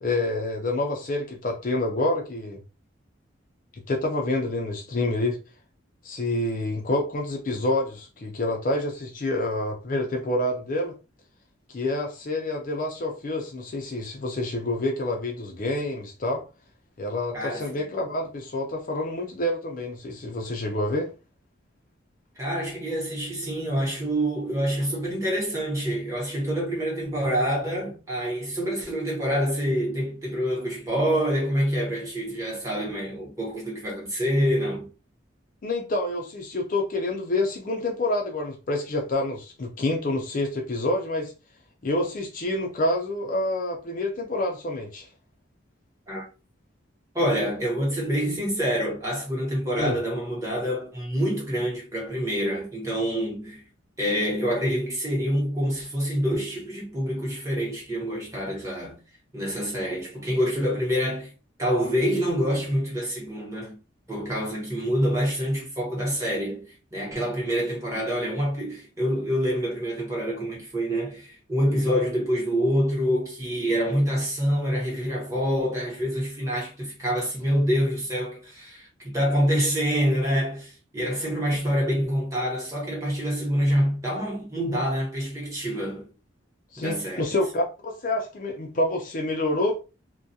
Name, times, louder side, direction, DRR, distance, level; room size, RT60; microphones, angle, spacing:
voice 1, 0.0-2.6 3.9-5.4 6.0-10.9 11.7-16.4 17.0-21.1 35.6-41.3 41.8-45.1 49.8-50.0 79.5-79.7 86.7-89.8, left 2 dB, 40° left, 0.4 m, -27 dB
voice 2, 17.3-17.7 22.4-34.9 46.1-46.2 47.1-53.6 54.0-59.0 59.3-61.3 61.6-63.7 64.1-86.1 86.8-87.3, equal, 15° right, 0.9 m, -26 dB
2.3 x 2.1 x 2.6 m
head